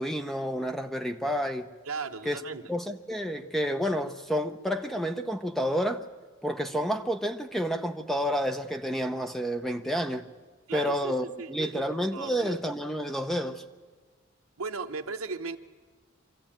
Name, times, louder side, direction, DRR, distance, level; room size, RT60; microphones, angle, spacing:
voice 1, 0.0-1.7 2.3-2.4 2.7-6.0 6.4-10.3 10.7-13.6, equal, ahead, 0.7 m, -30 dB
voice 2, 1.9-2.6 10.7-12.5 14.6-15.6, right 4 dB, 80° right, 1.0 m, -37 dB
25.0 x 14.0 x 8.9 m
head